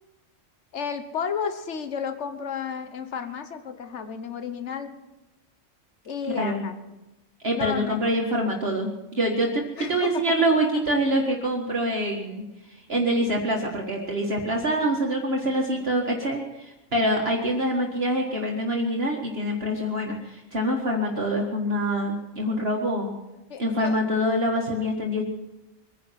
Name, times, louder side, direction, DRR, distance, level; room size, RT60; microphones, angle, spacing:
voice 1, 0.7-4.9 6.0-6.8 7.5-8.0 9.8-10.2 23.5-24.0, left 6 dB, 65° left, 8 dB, 1.5 m, -32 dB
voice 2, 6.3-6.6 7.4-12.4 12.7-23.1 23.6-25.2, equal, 50° right, -1 dB, 2.0 m, -25 dB
23.0 x 10.5 x 5.9 m, 1.0 s
omnidirectional pair, 1.3 m